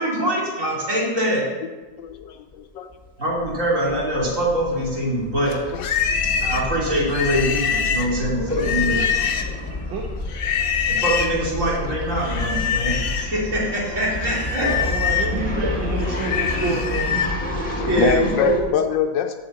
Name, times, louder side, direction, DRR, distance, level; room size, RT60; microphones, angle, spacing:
voice 1, 0.0-1.4 3.2-5.6 6.4-9.0 10.9-14.7 15.6-15.7 16.6-16.7 17.8-18.6, right 1 dB, 40° right, -5 dB, 3.2 m, -23 dB
voice 2, 2.0-2.9 6.1-6.2 8.1-8.5 17.7-19.4, left 8 dB, 80° left, 6 dB, 1.3 m, -25 dB
sound 1, 2.1-2.2 2.5-2.6 2.9-18.6, left 1 dB, 5° left, 1.4 m, -30 dB
Livestock farm animals working animals, 5.4-9.7 10.3-11.4 12.2-13.3 13.7-17.4, left 7 dB, 60° left, 1.1 m, -25 dB
voice 3, 14.6-17.1, right 4 dB, 80° right, 0 dB, 1.7 m, -29 dB
7.8 x 6.7 x 7.4 m, 1.3 s
omnidirectional pair, 2.0 m